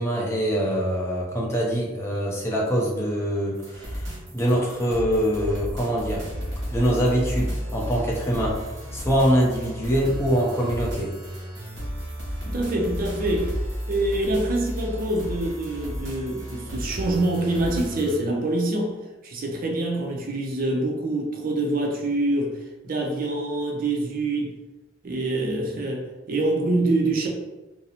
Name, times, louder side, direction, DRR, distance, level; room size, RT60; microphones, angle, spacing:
voice 1, 0.0-6.2 6.7-11.1, equal, 15° left, -3 dB, 0.5 m, -24 dB
sound 1, 3.5-18.2, equal, 80° right, 0.9 m, -33 dB
voice 2, 12.4-13.5 13.9-18.9 19.2-22.6 22.8-24.5 25.0-27.3, right 2 dB, 50° right, 1 dB, 0.4 m, -25 dB
2.6 x 2.0 x 2.7 m, 1.1 s
head